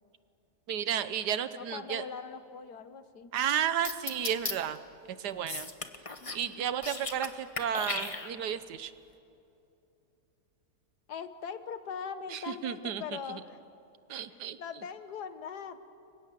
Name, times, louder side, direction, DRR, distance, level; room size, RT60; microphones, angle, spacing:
voice 1, 0.7-2.0 3.3-4.8 5.1-5.7 6.3-8.9 12.3-13.0 13.3-13.4 14.1-14.6, right 9 dB, 85° right, 13 dB, 1.5 m, -32 dB
voice 2, 1.6-3.3 6.2-6.6 11.1-13.6 14.3-15.9, left 6 dB, 80° left, 11 dB, 1.8 m, -41 dB
sound 1, 3.8-4.5 5.5-6.4 6.7-7.3 7.6-8.6, left 3 dB, 25° left, 1.1 m, -35 dB
29.5 x 24.0 x 7.6 m, 2.8 s
omnidirectional pair, 1.7 m